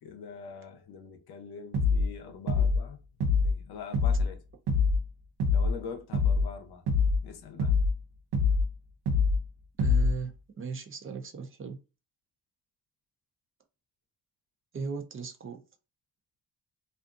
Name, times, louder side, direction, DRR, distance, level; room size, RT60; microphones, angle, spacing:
voice 1, 0.0-3.0 3.2-4.4 5.5-6.8 7.2-7.8, left 6 dB, 75° left, 0.7 m, -43 dB
sound 1, 1.7-2.1 2.5-2.8 3.2-3.6 3.9-4.3 4.7-5.0 5.4-5.8 6.1-6.5 6.9-7.2 7.6-8.0 8.3-8.7 9.1-9.4 9.8-10.2, left 4 dB, 85° right, 0.7 m, -24 dB
voice 2, 9.8-10.3 10.6-11.8 14.7-15.6, right 5 dB, 35° right, 0.5 m, -37 dB
2.5 x 2.4 x 2.4 m
cardioid pair, 100°, 39 cm